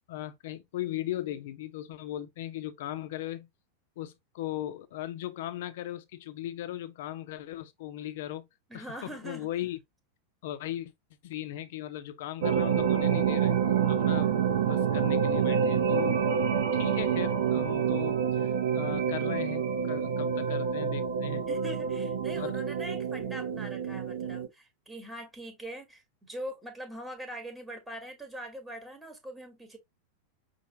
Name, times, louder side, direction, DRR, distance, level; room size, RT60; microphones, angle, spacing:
voice 1, 0.1-3.5 4.0-8.5 8.7-9.8 10.4-10.9 11.2-13.6 13.9-14.3 14.6-16.2 16.7-21.4 22.4-22.6, left 13 dB, 55° left, 0.6 m, -38 dB
voice 2, 8.7-9.5 21.4-29.8, right 1 dB, 5° right, 1.2 m, -42 dB
sound 1, 12.4-24.5, right 7 dB, 60° right, 0.7 m, -27 dB
5.6 x 2.6 x 2.7 m
figure-of-eight pair, 90°, 0 cm